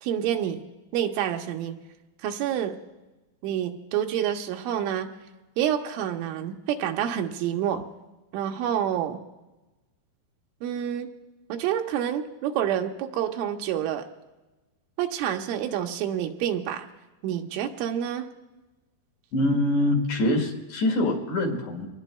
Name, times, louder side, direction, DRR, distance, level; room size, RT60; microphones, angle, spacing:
voice 1, 0.0-0.6 0.9-1.8 2.2-2.8 3.4-5.1 5.6-7.8 8.3-9.2 10.6-11.1 11.5-14.1 15.0-16.8 17.2-18.3, right 10 dB, 85° right, 4 dB, 3.3 m, -28 dB
voice 2, 19.3-21.9, left 1 dB, 65° left, 1 dB, 4.0 m, -24 dB
26.0 x 20.0 x 2.3 m, 1.1 s
omnidirectional pair, 5.5 m